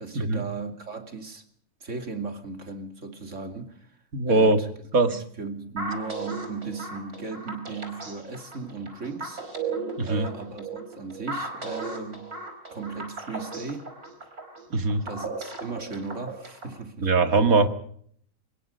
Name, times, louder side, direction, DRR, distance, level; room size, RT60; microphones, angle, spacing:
voice 1, 0.0-1.4 1.8-4.0 4.3-4.7 5.1-9.7 10.0-12.3 12.7-13.9 15.0-17.1, right 4 dB, 55° right, 2.9 m, -37 dB
voice 2, 4.1-4.6 4.9-5.2 10.0-10.3 14.7-15.0 17.0-17.7, right 3 dB, 70° right, 2.4 m, -21 dB
sound 1, 5.8-16.8, right 3 dB, 90° right, 5.4 m, -36 dB
25.0 x 21.5 x 5.3 m
omnidirectional pair, 1.5 m